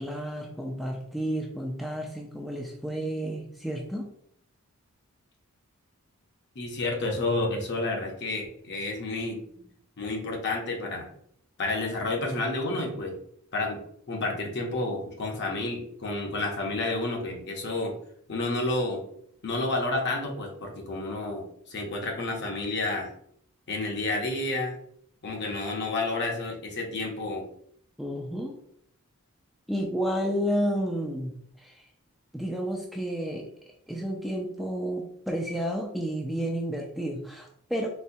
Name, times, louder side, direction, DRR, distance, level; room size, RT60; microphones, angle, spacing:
voice 1, 0.0-4.1 28.0-28.6 29.7-31.9 32.3-33.5 33.9-37.9, equal, ahead, -1 dB, 0.3 m, -31 dB
voice 2, 6.6-9.4 10.0-11.1 11.6-13.2 13.5-13.8 14.1-17.9 18.3-19.0 19.4-23.1 23.7-24.8 25.2-27.5, left 2 dB, 50° left, 1 dB, 0.8 m, -30 dB
4.1 x 2.1 x 2.6 m, 0.67 s
head